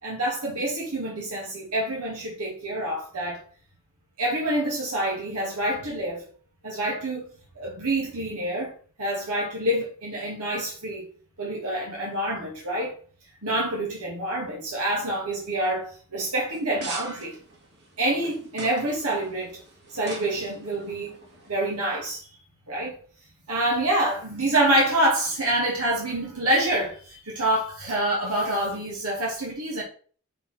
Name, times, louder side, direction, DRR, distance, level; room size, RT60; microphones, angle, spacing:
voice 1, 0.0-3.4 4.2-6.2 6.6-7.3 7.6-8.7 9.0-11.1 11.4-12.9 13.4-17.3 18.0-19.6 19.9-21.2 21.5-22.3 22.7-22.9 23.5-29.8, right 1 dB, 90° right, 2.6 m, -27 dB
sound 1, 16.5-22.0, right 2 dB, 50° right, 2.1 m, -43 dB
5.7 x 4.4 x 6.0 m
head